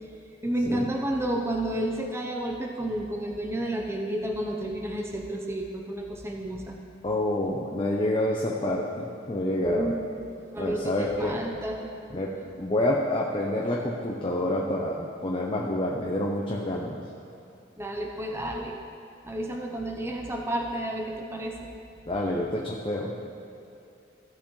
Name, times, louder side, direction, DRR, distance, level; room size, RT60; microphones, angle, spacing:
voice 1, 0.4-6.8 9.6-10.2 10.5-11.8 17.8-18.8 19.2-21.7, right 1 dB, 15° right, 1 dB, 0.8 m, -31 dB
voice 2, 7.0-9.9 10.6-11.4 12.1-17.0 22.1-23.1, left 1 dB, 25° left, -2 dB, 0.7 m, -28 dB
15.5 x 7.0 x 3.2 m, 2.6 s
head